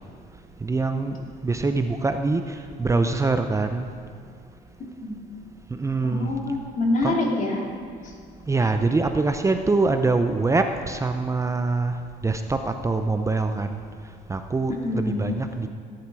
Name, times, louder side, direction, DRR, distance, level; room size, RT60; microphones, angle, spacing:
voice 1, 0.6-3.9 5.7-6.3 7.0-7.1 8.5-12.0 12.2-13.8 14.3-15.7, right 3 dB, 15° right, 7 dB, 0.7 m, -24 dB
voice 2, 6.0-7.6 14.7-15.2, left 2 dB, 50° left, -1 dB, 2.9 m, -25 dB
17.0 x 10.5 x 4.8 m, 2.3 s
cardioid pair, 110°, 17 cm